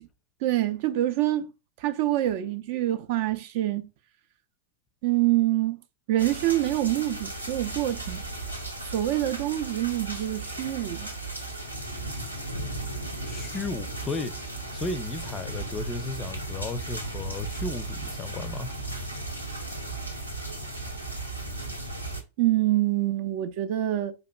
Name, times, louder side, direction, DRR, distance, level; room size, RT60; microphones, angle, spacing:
voice 1, 0.4-1.5 1.8-3.9 5.0-5.8 6.1-8.2 8.9-11.1 22.4-24.1, right 14 dB, 50° right, 0.4 m, -26 dB
sound 1, 6.2-22.2, right 2 dB, 90° right, 0.8 m, -35 dB
voice 2, 13.3-14.3 14.7-18.7, left 3 dB, 20° left, 0.4 m, -34 dB
4.9 x 2.8 x 2.2 m
figure-of-eight pair, 90°, 0 cm